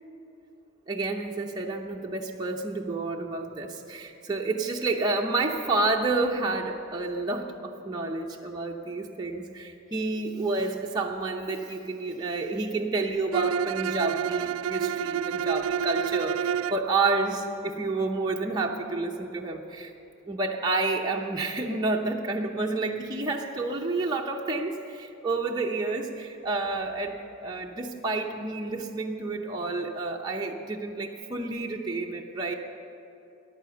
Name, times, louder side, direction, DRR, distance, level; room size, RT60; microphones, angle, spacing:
voice 1, 0.9-19.9 20.3-27.2 27.4-32.5, right 3 dB, 20° right, -1 dB, 0.7 m, -29 dB
Bowed string instrument, 13.3-16.9, right 8 dB, 80° right, 0.3 m, -29 dB
14.5 x 10.5 x 6.8 m, 2.9 s
head